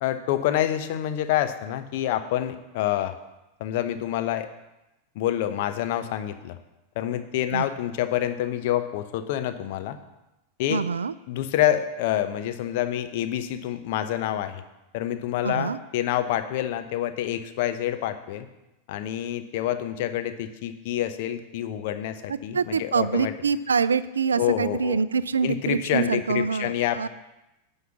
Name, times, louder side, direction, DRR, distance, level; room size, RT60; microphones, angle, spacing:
voice 1, 0.0-3.2 3.6-4.5 5.1-6.6 7.0-10.0 10.6-10.8 11.3-14.6 14.9-18.5 18.9-23.3 24.4-25.0 25.4-27.1, left 12 dB, 50° left, 9 dB, 0.8 m, -27 dB
voice 2, 10.7-11.1 15.4-15.8 22.3-27.1, right 5 dB, 70° right, 17 dB, 0.4 m, -25 dB
9.3 x 5.6 x 7.1 m, 0.96 s
figure-of-eight pair, 90°, 0 cm